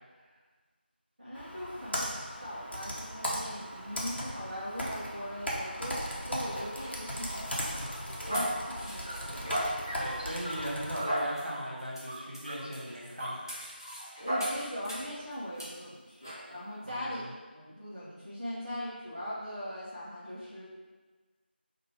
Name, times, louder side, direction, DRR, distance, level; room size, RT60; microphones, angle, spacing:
voice 1, 1.2-6.0 6.3-7.9 8.3-9.5 14.2-17.2 17.5-20.6, equal, 25° right, -12 dB, 0.7 m, -40 dB
Computer keyboard, 1.3-11.0, equal, 70° left, 0.9 m, -37 dB
sound 1, 6.4-15.2 15.6-15.7 16.2-16.4, equal, 20° left, 0.5 m, -37 dB
voice 2, 9.9-13.4 16.8-17.2, right 1 dB, 60° right, -5 dB, 1.3 m, -38 dB
4.6 x 2.5 x 3.3 m, 1.3 s
figure-of-eight pair, 180°, 6 cm